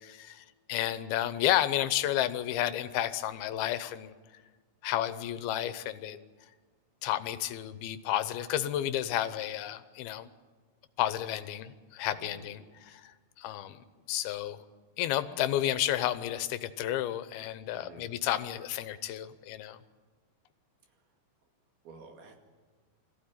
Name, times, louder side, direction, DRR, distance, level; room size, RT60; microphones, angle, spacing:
voice 1, 0.0-4.1 4.8-6.2 7.0-10.3 11.0-13.8 14.1-14.6 15.0-19.8, left 12 dB, 80° left, 13 dB, 2.7 m, -31 dB
voice 2, 12.1-12.6 17.7-18.1 21.8-22.4, right 4 dB, 75° right, 3 dB, 4.1 m, -51 dB
22.0 x 15.5 x 9.8 m, 1.4 s
omnidirectional pair, 4.4 m